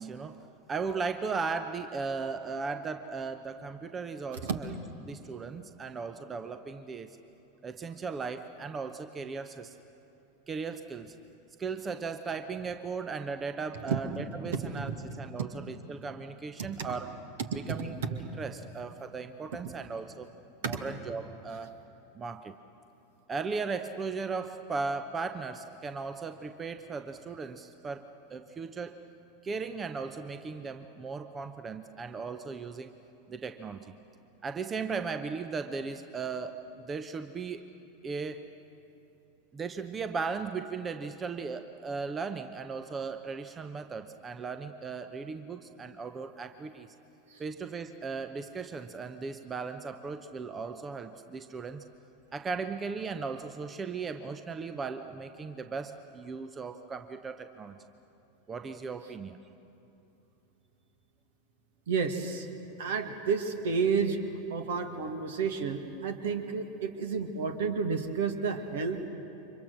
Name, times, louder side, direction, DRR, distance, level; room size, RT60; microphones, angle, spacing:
voice 1, 0.0-4.7 5.0-7.2 7.6-9.8 10.5-11.2 11.6-17.1 17.5-20.3 20.7-21.8 22.1-22.5 23.3-29.0 29.4-33.0 33.3-33.9 34.4-37.7 38.0-38.5 39.5-46.9 47.4-51.8 52.3-57.8 58.5-59.4, right 4 dB, 20° right, 9 dB, 0.9 m, -37 dB
voice 2, 14.4-15.0 15.4-15.5 16.8-16.9 17.5-17.8 20.6-20.8 47.3-47.4 61.9-62.5 62.8-64.2 64.5-69.1, right 5 dB, 60° right, 7 dB, 2.0 m, -31 dB
30.0 x 25.0 x 6.4 m, 2.9 s
figure-of-eight pair, 85°, 0 cm